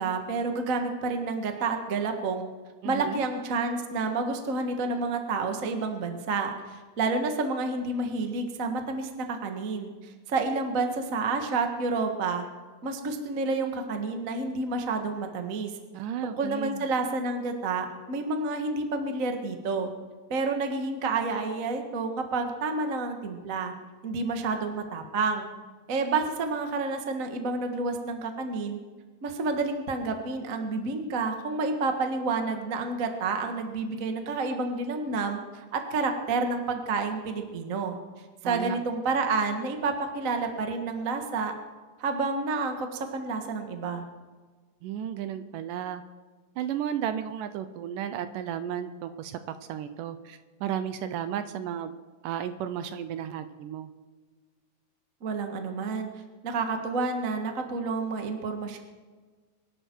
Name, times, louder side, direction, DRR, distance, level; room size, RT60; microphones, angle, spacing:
voice 1, 0.0-2.5 2.8-12.4 12.8-15.7 16.2-19.9 20.3-23.7 24.0-25.5 25.9-28.8 29.2-38.0 38.4-41.5 42.0-44.0 55.2-56.1 56.4-58.8, right 3 dB, 50° right, 5 dB, 0.9 m, -29 dB
voice 2, 2.8-3.2 15.9-16.8 38.4-38.8 44.8-46.0 46.6-49.4 49.7-51.9 52.2-53.9, right 9 dB, 75° right, 10 dB, 2.2 m, -33 dB
24.0 x 11.5 x 4.6 m, 1.4 s
omnidirectional pair, 4.1 m